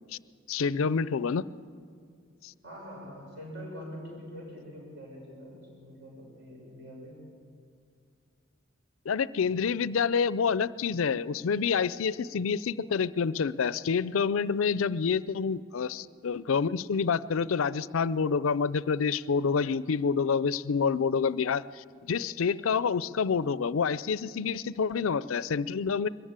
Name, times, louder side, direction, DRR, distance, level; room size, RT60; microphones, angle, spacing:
voice 1, 0.5-1.4 2.4-2.5 9.1-26.1, left 5 dB, 75° left, 18 dB, 0.5 m, -28 dB
voice 2, 2.6-7.2, equal, 60° right, -2 dB, 7.0 m, -44 dB
22.0 x 14.0 x 8.8 m, 2.2 s
head